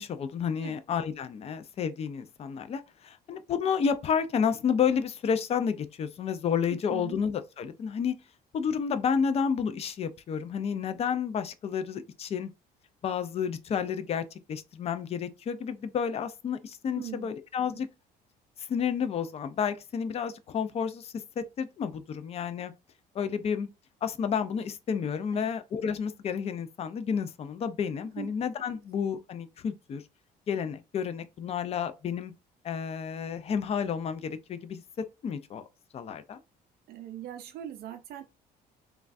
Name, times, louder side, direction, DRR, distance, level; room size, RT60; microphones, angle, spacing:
voice 1, 0.0-8.1 8.5-12.5 13.0-14.2 14.5-17.9 18.7-22.7 23.2-23.7 24.0-30.0 30.5-32.3 32.6-34.8 35.2-35.6 35.9-36.4, left 7 dB, 40° left, 0.4 m, -30 dB
voice 2, 6.7-7.2 16.9-17.3 17.7-17.8 25.3-25.5 28.0-28.3 36.9-38.2, right 11 dB, 65° right, 0.4 m, -41 dB
3.1 x 2.3 x 2.5 m
cardioid pair, 110°, 17 cm